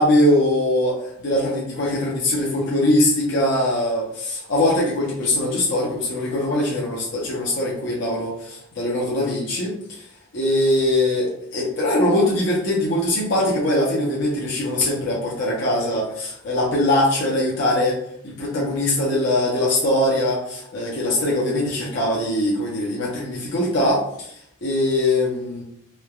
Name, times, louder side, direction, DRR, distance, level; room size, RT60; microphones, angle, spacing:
voice 1, 0.0-10.1 10.3-18.0 18.2-25.6, left 1 dB, 55° left, -5 dB, 0.6 m, -22 dB
3.2 x 2.1 x 2.2 m, 0.71 s
head